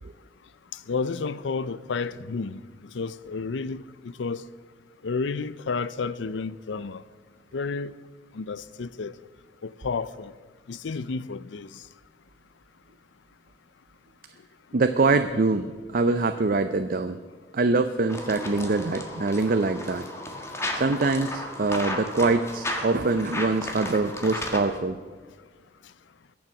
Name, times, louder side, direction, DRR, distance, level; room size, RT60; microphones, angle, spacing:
voice 1, 0.7-4.4 5.0-7.0 7.5-7.9 8.3-9.2 9.6-10.3 10.7-11.8, left 4 dB, 80° left, 0.5 m, -31 dB
voice 2, 14.7-17.2 17.5-20.1 20.7-25.0, right 3 dB, 50° right, 0.5 m, -24 dB
sound 1, 18.1-24.8, left 1 dB, 15° left, 1.6 m, -34 dB
21.5 x 7.2 x 6.0 m
head